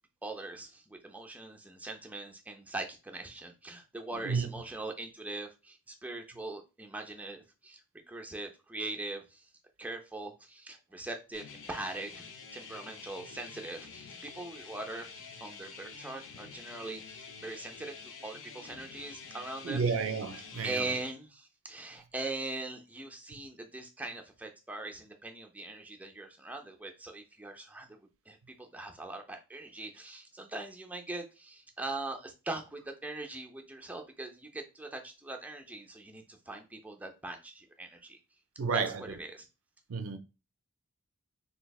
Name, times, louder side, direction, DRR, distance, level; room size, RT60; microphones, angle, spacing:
voice 1, 0.2-7.8 8.1-9.5 9.8-12.2 12.5-19.8 20.6-28.0 28.3-38.2 38.7-38.8 39.1-39.4, right 2 dB, 5° right, 0.4 m, -41 dB
sound 1, 11.3-21.1, left 5 dB, 60° left, 0.5 m, -48 dB
voice 2, 19.6-20.9 38.6-39.2 39.9-40.2, right 5 dB, 65° right, 0.4 m, -31 dB
3.4 x 3.1 x 2.3 m
head